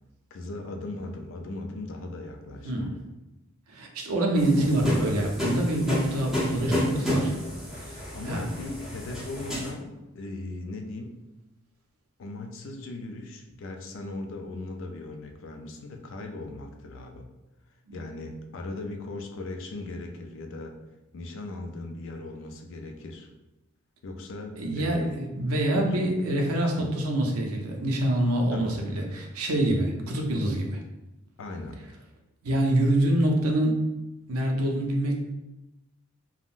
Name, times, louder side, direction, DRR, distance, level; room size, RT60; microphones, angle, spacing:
voice 1, 0.3-2.9 6.7-7.1 7.8-11.2 12.2-17.3 17.9-20.8 21.1-23.3 24.0-25.3 25.7-26.1 26.8-26.9 28.5-28.8 31.4-31.8, left 2 dB, 60° left, 4 dB, 0.4 m, -38 dB
voice 2, 2.6-3.0 3.7-7.3 7.8-8.4 17.9-18.0 24.6-30.8 32.4-33.8 34.3-35.2, right 1 dB, 80° right, 1 dB, 0.6 m, -26 dB
sound 1, 4.4-9.7, equal, ahead, 0.7 m, -30 dB
3.5 x 2.1 x 2.4 m, 0.99 s
head